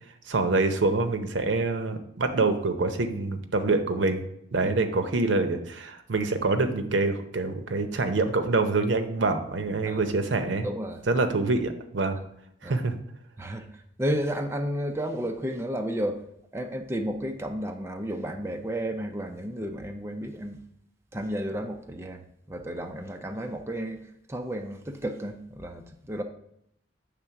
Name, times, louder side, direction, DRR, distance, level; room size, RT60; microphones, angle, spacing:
voice 1, 0.3-4.2 4.5-10.7 11.1-12.2 12.6-12.9, right 3 dB, 80° right, 8 dB, 0.7 m, -26 dB
voice 2, 10.6-11.0 12.6-12.8 13.4-13.7 14.0-16.2 16.5-20.6 21.1-22.2 22.5-26.2, equal, 15° right, 4 dB, 0.5 m, -32 dB
7.7 x 3.6 x 5.7 m, 0.74 s
head